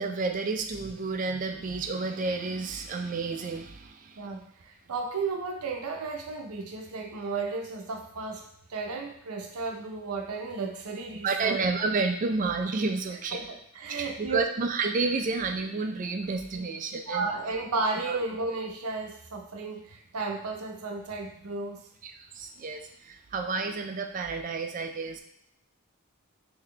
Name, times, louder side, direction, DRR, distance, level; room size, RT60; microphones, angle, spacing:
voice 1, 0.0-4.3 11.2-13.4 13.9-17.3 18.1-18.2 22.0-25.2, right 4 dB, 35° right, 5 dB, 0.4 m, -30 dB
voice 2, 4.2-11.6 13.3-14.4 16.6-16.7 17.1-21.8, right 3 dB, 85° right, 2 dB, 0.6 m, -34 dB
3.9 x 2.7 x 3.2 m, 0.73 s
head